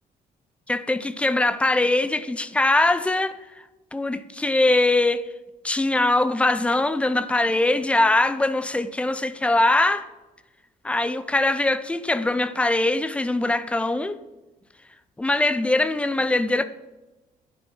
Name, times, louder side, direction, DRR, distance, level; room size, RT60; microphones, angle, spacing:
voice 1, 0.7-3.6 3.9-5.3 5.6-10.1 10.8-14.2 15.2-16.6, left 2 dB, 10° left, 0.5 m, -22 dB
11.0 x 9.6 x 5.5 m
cardioid pair, 160°, 15 cm